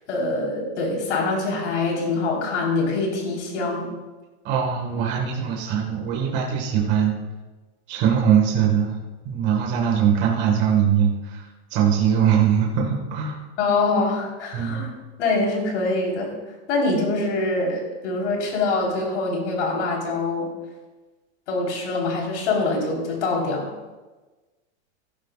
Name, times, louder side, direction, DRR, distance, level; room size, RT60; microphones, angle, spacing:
voice 1, 0.1-3.9 13.6-14.9 15.2-16.3 16.7-20.5 21.5-23.7, left 3 dB, 85° left, 0 dB, 4.2 m, -24 dB
voice 2, 4.4-7.2 7.9-9.0 9.2-13.4 14.5-14.8, right 8 dB, 30° right, -1 dB, 1.8 m, -21 dB
15.0 x 11.5 x 2.5 m, 1.2 s
supercardioid pair, 170°, 35 cm